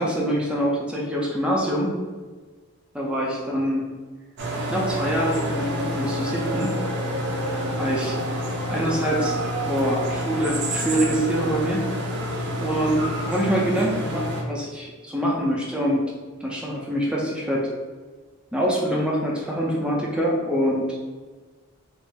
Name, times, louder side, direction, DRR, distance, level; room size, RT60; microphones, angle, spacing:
voice 1, 0.0-2.0 2.9-3.8 4.7-6.8 7.7-8.2 8.7-9.4 9.7-12.1 12.6-16.1 16.4-17.7 18.5-21.0, equal, 5° right, -4 dB, 0.5 m, -25 dB
sound 1, 4.4-14.4, equal, 55° right, 0.7 m, -28 dB
4.0 x 2.0 x 3.5 m, 1.4 s
head